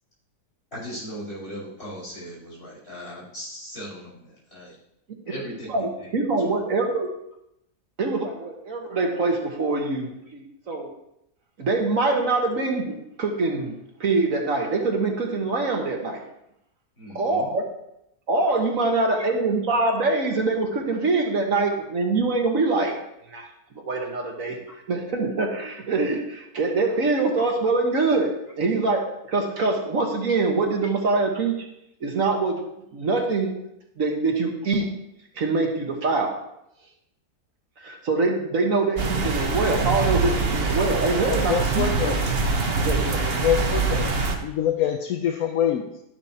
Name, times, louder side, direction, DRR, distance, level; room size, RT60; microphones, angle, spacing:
voice 1, 0.7-4.8 5.3-6.1 6.4-6.5 17.0-17.5, equal, 40° left, -8 dB, 5.2 m, -38 dB
voice 2, 5.7-7.1 8.0-10.9 11.6-16.2 17.1-17.6 18.3-23.0 23.3-23.5 23.7-24.6 24.9-31.6 32.0-32.6 32.9-33.5 34.0-34.9 35.4-36.4 37.8-42.1 42.7-43.3, right 3 dB, 60° right, 1 dB, 1.7 m, -24 dB
sound 1, 39.0-44.3, right 4 dB, 45° right, 1.2 m, -24 dB
voice 3, 41.3-42.2 43.4-44.1 44.4-45.8, left 9 dB, 70° left, 4 dB, 1.2 m, -25 dB
12.0 x 10.5 x 2.9 m, 0.81 s
omnidirectional pair, 1.6 m